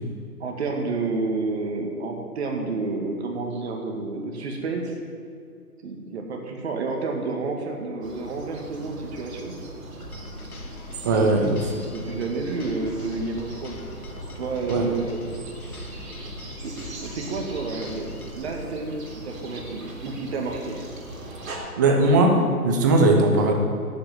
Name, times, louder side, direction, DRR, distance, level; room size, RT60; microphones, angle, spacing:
voice 1, 0.4-5.0 5.8-9.6 11.2-11.6 11.9-13.8 14.4-15.2 16.1-16.3 16.6-16.7 17.0-20.8, right 3 dB, 45° right, 2 dB, 2.2 m, -30 dB
sound 1, 8.0-21.6, right 2 dB, 60° right, 3.8 m, -40 dB
sound 2, 10.0-18.3, left 2 dB, 70° left, 2.3 m, -42 dB
voice 2, 11.0-11.6 14.7-14.9 21.8-22.4 22.6-23.5, right 2 dB, 15° right, 2 dB, 0.7 m, -18 dB
11.5 x 9.0 x 7.9 m, 2.3 s
hypercardioid pair, 155°, 46 cm